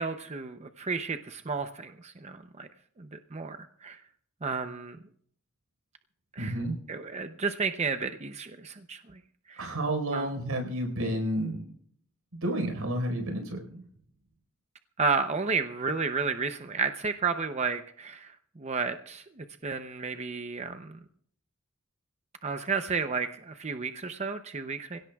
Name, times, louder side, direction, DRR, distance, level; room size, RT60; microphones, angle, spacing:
voice 1, 0.0-2.7 3.0-4.0 4.4-5.0 6.4-6.6 6.9-9.0 9.5-9.7 10.1-10.3 15.0-21.0 22.4-25.0, right 4 dB, 30° right, 8 dB, 0.6 m, -32 dB
voice 2, 6.4-6.7 9.6-11.6 12.4-13.8, right 1 dB, 85° right, 5 dB, 4.5 m, -30 dB
26.5 x 17.0 x 2.3 m, 0.63 s
head